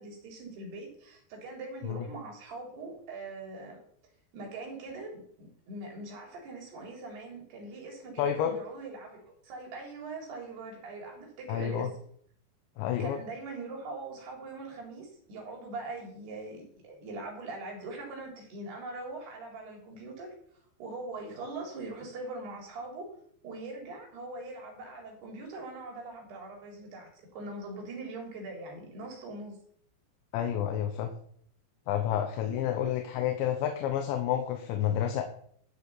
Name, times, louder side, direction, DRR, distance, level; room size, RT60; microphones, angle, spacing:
voice 1, 0.0-3.8 4.3-11.9 13.0-20.4 20.8-23.1 23.4-29.6, right 2 dB, 60° right, 0 dB, 5.6 m, -42 dB
voice 2, 8.2-8.5 11.5-11.9 12.8-13.2 30.3-31.1 31.9-35.2, left 10 dB, 75° left, 5 dB, 3.3 m, -29 dB
13.5 x 6.3 x 7.2 m, 0.62 s
omnidirectional pair, 5.4 m